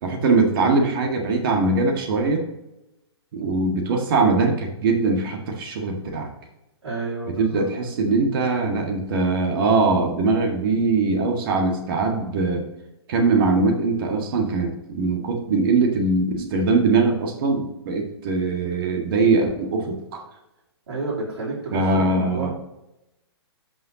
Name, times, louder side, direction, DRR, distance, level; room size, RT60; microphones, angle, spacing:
voice 1, 0.0-2.4 3.3-6.3 7.4-12.6 13.1-20.2 21.7-22.5, right 3 dB, 55° right, 2 dB, 1.8 m, -21 dB
voice 2, 6.8-7.6 20.9-22.5, right 3 dB, 70° right, -8 dB, 3.3 m, -30 dB
13.5 x 5.6 x 2.9 m, 0.90 s
hypercardioid pair, 125°, 14 cm